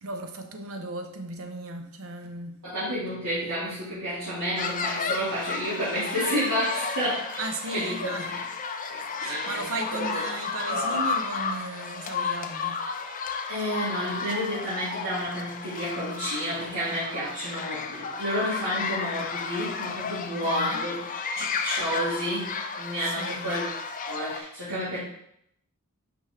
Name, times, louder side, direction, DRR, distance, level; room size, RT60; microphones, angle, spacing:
voice 1, 0.0-2.6 7.4-8.3 9.2-12.8 20.4-20.8 23.0-23.6, right 3 dB, 65° right, 0.8 m, -36 dB
voice 2, 2.6-7.4 7.7-8.4 8.9-9.7 10.0-10.2 10.7-11.0 13.5-21.0 21.3-23.7 24.1-25.0, equal, 90° right, 2.6 m, -30 dB
sound 1, 4.6-24.4, left 5 dB, 35° left, 0.5 m, -33 dB
5.6 x 5.2 x 3.6 m
head